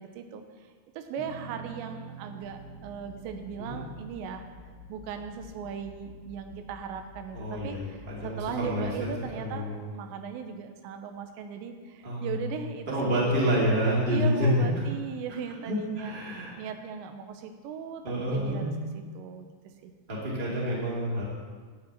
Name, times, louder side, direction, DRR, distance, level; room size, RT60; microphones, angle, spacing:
voice 1, 0.0-4.4 4.9-9.7 9.9-13.6 14.1-18.7 19.1-19.5 19.8-19.9, right 6 dB, 85° right, 6 dB, 3.0 m, -38 dB
sound 1, 1.2-7.7, right 5 dB, 35° left, 1.6 m, -48 dB
sound 2, 2.4-9.3, left 4 dB, 85° left, 3.9 m, -50 dB
voice 2, 7.3-8.9 9.3-9.8 12.0-12.4 12.9-14.7 15.6-16.6 18.0-18.7 20.1-21.2, equal, 15° right, -6 dB, 1.8 m, -28 dB
12.0 x 4.9 x 8.6 m, 1.5 s
omnidirectional pair, 5.1 m